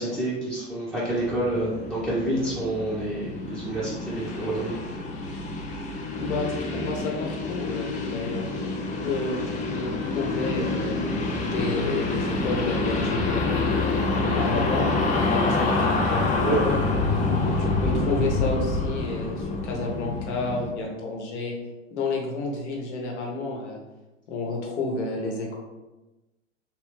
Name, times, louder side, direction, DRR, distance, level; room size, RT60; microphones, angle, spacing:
voice 1, 0.0-4.7 16.4-16.6, right 1 dB, 5° right, -10 dB, 1.1 m, -28 dB
sound 1, 1.1-20.7, left 3 dB, 20° left, 0.5 m, -27 dB
voice 2, 6.2-8.5 9.0-9.4 9.7-11.0 11.5-14.0 14.3-14.9 15.2-16.8 17.5-21.6 21.9-23.8 24.3-25.6, left 3 dB, 65° left, 0 dB, 1.1 m, -30 dB
3.5 x 3.1 x 3.2 m, 1.1 s
figure-of-eight pair, 95°, 37 cm